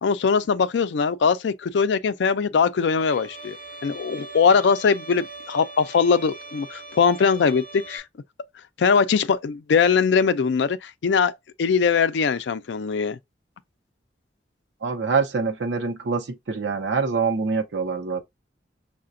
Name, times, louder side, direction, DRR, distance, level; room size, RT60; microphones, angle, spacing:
voice 1, 0.0-3.6 3.8-8.0 8.8-11.3 11.6-13.2, left 5 dB, 80° left, 0.4 m, -21 dB
Bowed string instrument, 3.0-8.0, right 3 dB, 5° right, 2.1 m, -41 dB
voice 2, 14.8-18.2, right 4 dB, 85° right, 0.6 m, -25 dB
5.6 x 2.1 x 2.4 m
head